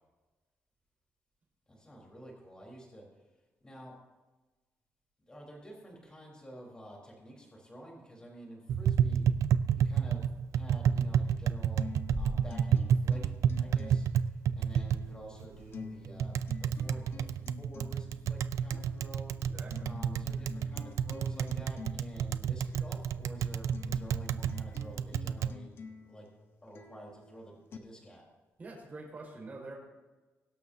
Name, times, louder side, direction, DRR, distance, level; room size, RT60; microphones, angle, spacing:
voice 1, 1.7-3.1 3.6-3.9 5.3-9.2 9.7-11.8 12.1-16.3 16.6-19.3 19.8-26.3 26.6-28.2, right 1 dB, 15° left, -2 dB, 4.0 m, -48 dB
Tap, 8.7-25.5, right 8 dB, 75° right, 0.5 m, -30 dB
sound 1, 11.8-27.8, left 4 dB, 50° left, 1.1 m, -49 dB
voice 2, 19.4-19.9 28.6-29.7, right 2 dB, 30° right, -2 dB, 5.2 m, -45 dB
22.5 x 12.0 x 2.8 m, 1.2 s
wide cardioid pair, 165°, 5 cm